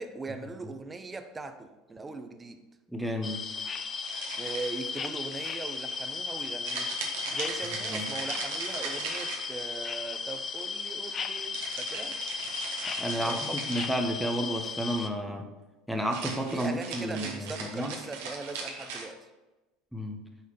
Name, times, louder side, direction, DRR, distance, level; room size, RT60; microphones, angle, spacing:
voice 1, 0.0-2.6 4.4-6.9 7.3-12.2 13.2-13.8 16.5-19.3, right 3 dB, 15° right, 0.7 m, -40 dB
voice 2, 2.9-3.4 7.8-8.1 13.0-15.5 15.9-17.9 19.9-20.2, equal, ahead, 1.2 m, -32 dB
sound 1, 3.2-15.1, left 5 dB, 30° left, 0.5 m, -35 dB
sound 2, 4.0-5.0 6.6-9.8 11.5-14.0 16.0-19.0, right 5 dB, 60° right, 1.4 m, -38 dB
9.4 x 4.3 x 5.5 m
figure-of-eight pair, 70°, 0 cm